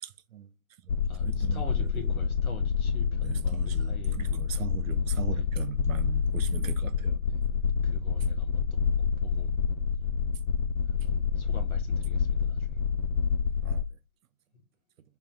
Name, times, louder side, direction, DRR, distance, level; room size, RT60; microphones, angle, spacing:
voice 1, 0.0-0.5 0.8-1.0 1.2-2.1 3.2-7.2 13.6-13.8, right 9 dB, 70° right, 0.6 m, -40 dB
sound 1, 0.9-13.8, left 6 dB, 65° left, 0.8 m, -28 dB
voice 2, 1.1-4.6 5.3-5.5 6.9-7.4 7.8-8.7 9.0-9.6 10.8-12.8, left 4 dB, 85° left, 1.6 m, -46 dB
4.0 x 3.5 x 2.7 m
hypercardioid pair, 135°, 42 cm